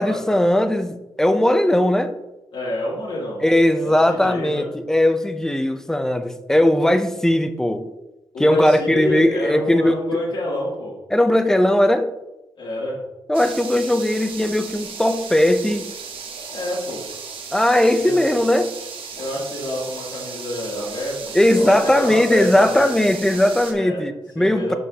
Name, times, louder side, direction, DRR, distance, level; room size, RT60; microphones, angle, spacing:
voice 1, 0.0-2.1 3.4-7.9 8.4-9.9 11.1-12.1 13.3-15.9 17.5-18.8 21.3-24.8, left 1 dB, 5° left, 0.5 m, -18 dB
voice 2, 2.5-3.4 3.8-4.7 8.3-10.9 12.6-13.0 16.5-17.0 18.0-18.3 19.1-22.9 23.7-24.0 24.4-24.8, left 1 dB, 70° left, 2.7 m, -28 dB
sound 1, 13.3-23.7, right 5 dB, 85° right, 1.0 m, -35 dB
11.0 x 5.4 x 2.8 m
wide cardioid pair, 165°, 9 cm